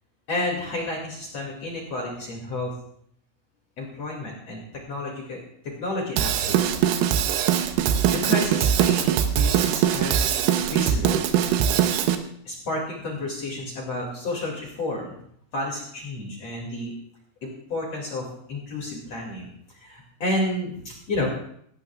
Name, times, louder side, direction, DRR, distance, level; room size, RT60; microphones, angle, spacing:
voice 1, 0.3-2.7 3.8-6.7 8.1-10.4 10.7-11.2 12.5-15.1 15.5-16.9 17.4-21.3, left 1 dB, 45° left, -1 dB, 2.4 m, -31 dB
Drum kit / Drum, 6.2-12.2, right 9 dB, 90° right, 3.6 m, -22 dB
18.0 x 15.0 x 2.4 m, 0.66 s
omnidirectional pair, 5.9 m